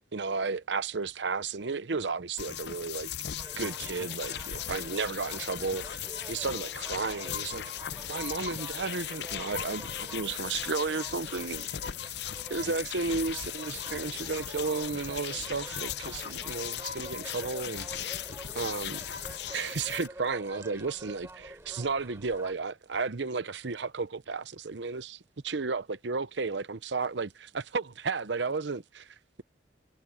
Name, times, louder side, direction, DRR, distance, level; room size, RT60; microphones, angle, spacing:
voice 1, 0.1-3.1 3.6-7.7 8.1-11.7 12.1-12.2 12.5-18.2 18.6-19.0 19.5-25.2 25.4-29.4, right 4 dB, 75° right, 0.8 m, -33 dB
sound 1, 2.4-20.1, left 10 dB, 65° left, 0.6 m, -38 dB
sound 2, 3.4-22.5, right 1 dB, 15° right, 4.3 m, -48 dB
head